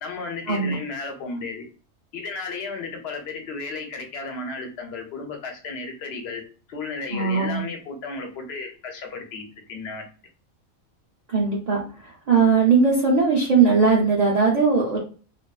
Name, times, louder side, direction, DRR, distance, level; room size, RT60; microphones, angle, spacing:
voice 1, 0.0-1.6 2.1-6.4 6.7-10.0, left 4 dB, 60° left, 3 dB, 0.8 m, -34 dB
voice 2, 7.1-7.6 11.3-15.0, right 5 dB, 85° right, -4 dB, 0.3 m, -19 dB
2.5 x 2.2 x 2.3 m, 0.39 s
omnidirectional pair, 1.4 m